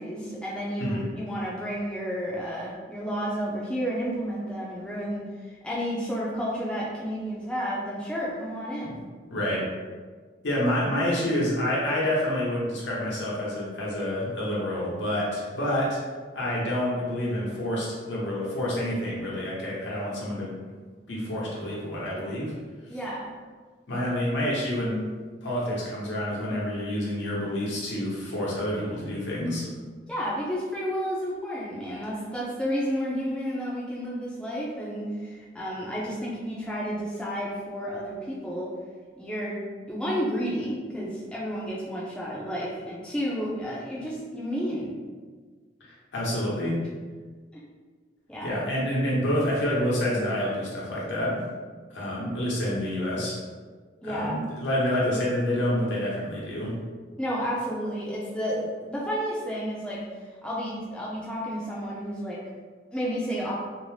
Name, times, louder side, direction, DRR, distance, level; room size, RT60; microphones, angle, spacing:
voice 1, 0.0-9.0 22.9-23.3 30.1-38.7 39.2-39.6 39.9-44.9 47.5-47.6 48.3-48.6 54.0-54.4 57.2-60.0 60.4-62.4 62.9-63.6, equal, 5° left, -6 dB, 0.4 m, -31 dB
voice 2, 9.3-9.7 10.4-16.0 16.3-20.5 21.1-22.5 23.9-25.0 25.4-29.7 46.1-46.8 48.4-51.4 51.9-53.4 54.0-56.7, left 1 dB, 80° left, -5 dB, 0.8 m, -28 dB
2.6 x 2.0 x 3.1 m, 1.5 s
head